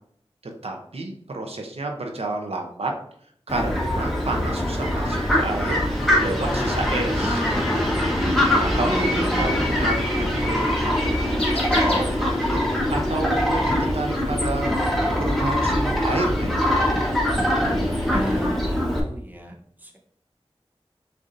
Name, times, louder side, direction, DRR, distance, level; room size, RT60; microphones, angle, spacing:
voice 1, 0.6-2.9 3.5-5.9 6.2-7.8 8.5-12.6 12.9-14.9 15.2-16.6, right 2 dB, 75° right, 2 dB, 0.7 m, -30 dB
Fowl, 3.5-19.0, left 1 dB, ahead, 1.2 m, -23 dB
Bird, 7.4-12.7, left 1 dB, 65° left, 1.1 m, -34 dB
voice 2, 8.8-9.6 18.1-20.0, right 1 dB, 15° right, 1 dB, 0.8 m, -34 dB
6.7 x 2.6 x 2.6 m, 0.64 s
wide cardioid pair, 70°, 10 cm